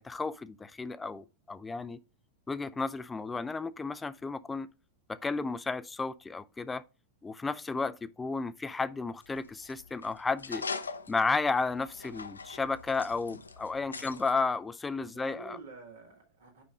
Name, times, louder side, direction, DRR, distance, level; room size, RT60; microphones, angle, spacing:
voice 1, 0.0-2.0 2.5-4.7 5.1-6.8 7.2-10.6 11.1-15.6, left 4 dB, 15° left, 0.4 m, -33 dB
sound 1, 9.2-14.3, left 4 dB, 75° left, 0.6 m, -42 dB
voice 2, 14.0-14.3 15.0-16.6, right 4 dB, 65° right, 1.9 m, -49 dB
5.3 x 5.1 x 4.8 m
figure-of-eight pair, 90°, 0 cm